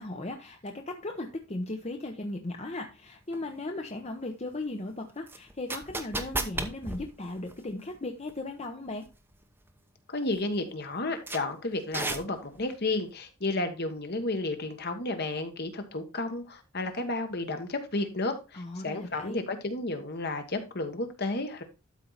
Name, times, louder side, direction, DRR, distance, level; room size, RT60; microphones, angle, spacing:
voice 1, 0.0-9.1 18.5-19.4, left 2 dB, 30° left, 0.8 m, -37 dB
sound 1, 3.3-3.4 5.3-8.0 8.3-8.4 9.1-9.3 9.7-9.8 10.3-10.4 11.3-11.4 11.9-12.7, right 2 dB, 10° right, 0.8 m, -34 dB
voice 2, 10.1-21.6, left 2 dB, 50° left, 1.4 m, -32 dB
12.5 x 4.6 x 4.0 m
head